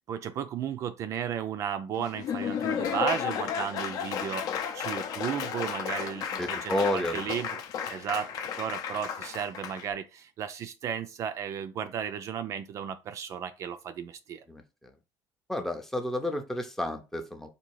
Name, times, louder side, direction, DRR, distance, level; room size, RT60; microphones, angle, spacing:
voice 1, 0.1-7.5 7.9-8.3 8.6-14.4, right 8 dB, 40° right, 0.4 m, -34 dB
Laughter / Applause, 2.0-9.9, left 8 dB, 50° left, 0.6 m, -33 dB
voice 2, 6.4-7.3 14.5-14.9 15.5-17.5, left 1 dB, 5° left, 0.6 m, -31 dB
4.1 x 2.7 x 4.6 m
cardioid pair, 170°, 8 cm